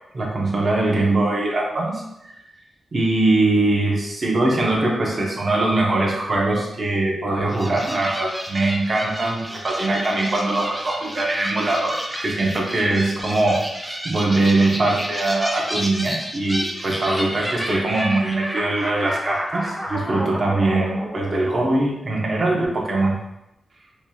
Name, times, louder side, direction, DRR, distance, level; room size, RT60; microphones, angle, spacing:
voice 1, 0.1-2.3 2.9-13.7 14.0-23.2, right 2 dB, 40° right, -3 dB, 0.9 m, -22 dB
sound 1, 7.5-22.1, equal, 5° right, 0.5 m, -31 dB
4.6 x 2.8 x 2.3 m, 0.85 s
wide cardioid pair, 115°, 0 cm